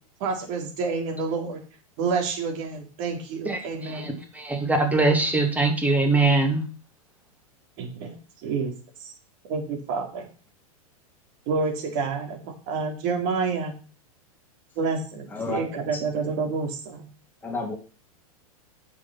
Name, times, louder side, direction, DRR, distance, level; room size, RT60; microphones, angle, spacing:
voice 1, 0.2-1.6 2.0-4.2 7.8-8.7 9.0-9.1 9.4-10.3 11.5-13.7 14.8-17.1, right 4 dB, 50° right, 2 dB, 4.0 m, -29 dB
voice 2, 3.4-6.6, right 3 dB, 10° right, 4 dB, 2.6 m, -22 dB
voice 3, 15.3-16.0 17.4-17.7, left 3 dB, 10° left, -1 dB, 3.7 m, -32 dB
9.5 x 7.0 x 6.0 m, 0.37 s
hypercardioid pair, 115°, 19 cm